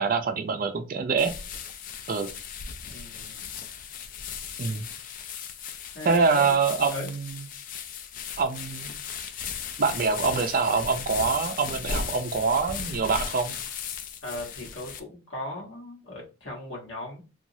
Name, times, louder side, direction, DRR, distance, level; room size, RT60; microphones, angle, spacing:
voice 1, 0.0-1.3 2.1-2.3 4.6-4.9 6.1-7.4 8.4-8.9 9.8-13.5, right 4 dB, 50° right, 8 dB, 0.4 m, -25 dB
sound 1, 1.2-15.0, left 6 dB, 45° left, 0.3 m, -37 dB
voice 2, 2.8-3.5 5.9-6.6 6.9-7.1 14.2-17.2, left 2 dB, 75° left, -1 dB, 1.1 m, -38 dB
2.9 x 2.3 x 2.6 m, 0.31 s
head